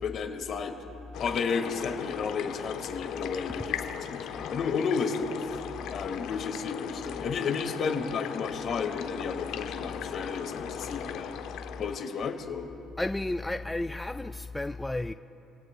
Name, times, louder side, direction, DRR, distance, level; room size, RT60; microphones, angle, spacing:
voice 1, 0.0-0.7 1.2-5.6 5.9-11.3 11.8-12.7, left 5 dB, 50° left, 1.6 m, -32 dB
sound 1, 1.1-12.4, left 9 dB, 75° left, 0.9 m, -38 dB
voice 2, 13.0-15.1, left 2 dB, 10° left, 0.3 m, -32 dB
29.5 x 17.0 x 2.2 m
cardioid pair, 110°, 0 cm